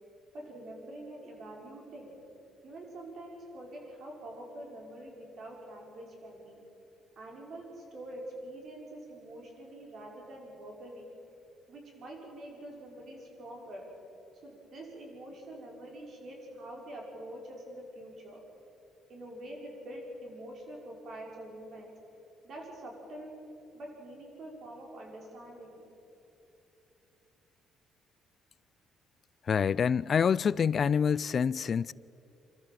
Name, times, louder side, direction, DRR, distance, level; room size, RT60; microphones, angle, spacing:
voice 1, 0.3-2.2 2.6-6.6 7.2-11.1 11.7-13.9 14.4-18.4 19.1-21.9 22.4-23.3 23.7-25.8, right 1 dB, 50° right, 5.5 m, -45 dB
voice 2, 29.5-31.9, left 7 dB, 40° left, 0.4 m, -26 dB
27.0 x 13.5 x 7.6 m
cardioid pair, 125°, 0 cm